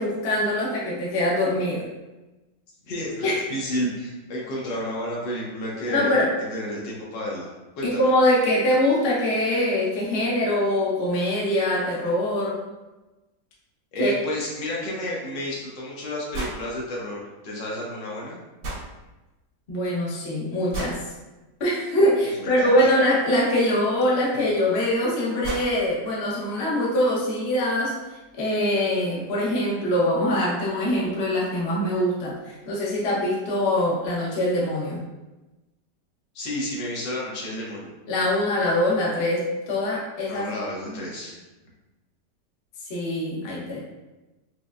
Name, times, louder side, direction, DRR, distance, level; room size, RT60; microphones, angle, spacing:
voice 1, 0.0-1.9 3.2-3.4 5.9-6.3 7.8-12.6 14.0-14.1 19.7-21.0 21.6-35.0 38.1-40.5 40.8-40.9 42.9-43.8, left 1 dB, 45° left, -5 dB, 0.9 m, -23 dB
voice 2, 2.9-6.1 6.5-7.5 7.8-8.0 13.9-18.4 22.4-22.9 36.3-37.9 40.3-41.3, left 1 dB, 85° left, -3 dB, 1.6 m, -31 dB
sound 1, 16.3-16.6 18.6-18.9 20.7-21.0 23.3-23.4 24.7-24.8 25.1-25.2 25.4-25.7, right 2 dB, 80° right, 1.8 m, -32 dB
5.3 x 2.1 x 2.4 m, 1.1 s
omnidirectional pair, 1.9 m